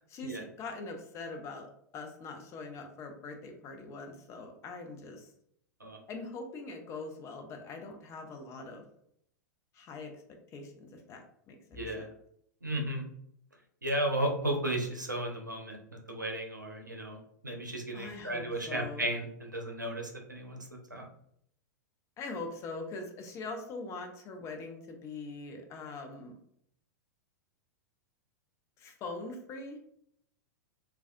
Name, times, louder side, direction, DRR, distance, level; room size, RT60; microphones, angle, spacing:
voice 1, 0.1-1.7 1.9-5.3 6.1-8.9 9.7-10.1 10.5-12.1 17.9-19.1 22.2-26.4 28.8-29.8, left 3 dB, 30° left, 5 dB, 0.6 m, -42 dB
voice 2, 11.7-12.1 12.6-13.0 13.8-17.2 17.4-20.6 20.9-21.0, right 1 dB, 90° right, 2 dB, 0.6 m, -34 dB
3.4 x 2.3 x 2.5 m, 0.70 s
figure-of-eight pair, 95°, 10 cm